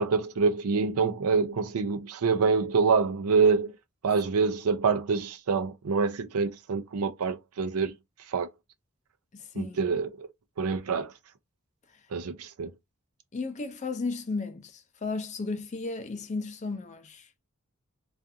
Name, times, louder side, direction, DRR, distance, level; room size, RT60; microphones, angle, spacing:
voice 1, 0.0-3.8 4.0-7.9 8.3-8.5 9.6-10.3 10.6-11.1 12.1-12.7, right 5 dB, 90° right, 0.5 m, -26 dB
voice 2, 9.3-9.8 13.3-17.3, left 3 dB, 35° left, 0.4 m, -34 dB
2.5 x 2.4 x 2.6 m
head